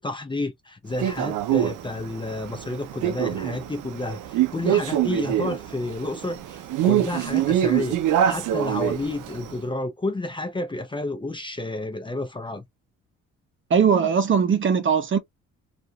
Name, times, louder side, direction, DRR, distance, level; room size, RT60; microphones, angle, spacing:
voice 1, 0.0-8.0 8.2-12.6, left 2 dB, 15° left, 0.6 m, -30 dB
Male speech man speaking, 1.0-9.5, right 11 dB, 80° right, 0.6 m, -25 dB
voice 2, 13.7-15.2, right 6 dB, 40° right, 0.7 m, -20 dB
2.8 x 2.5 x 2.3 m
cardioid pair, 90°, 30 cm